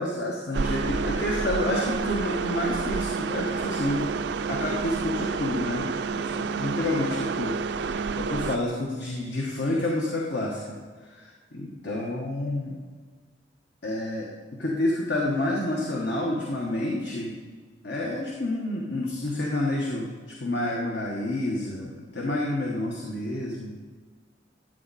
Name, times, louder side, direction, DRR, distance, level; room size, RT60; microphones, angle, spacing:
voice 1, 0.0-4.2 4.5-10.8 11.0-12.8 13.8-14.3 14.6-17.4 17.8-23.7, left 1 dB, 70° left, -2 dB, 1.5 m, -29 dB
sound 1, 0.5-8.6, right 5 dB, 70° right, 0.4 m, -29 dB
14.5 x 9.2 x 4.3 m, 1.5 s
head